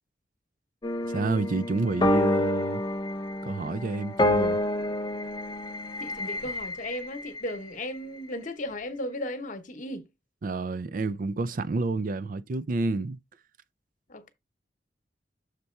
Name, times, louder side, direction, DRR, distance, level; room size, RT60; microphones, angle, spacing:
sound 1, 0.8-7.6, left 1 dB, 25° left, 0.5 m, -28 dB
voice 1, 1.1-2.8 3.4-4.6 10.4-13.2, right 3 dB, 50° right, 0.4 m, -29 dB
voice 2, 6.0-10.1 14.1-14.3, left 1 dB, 45° left, 1.1 m, -35 dB
6.7 x 4.1 x 4.5 m
head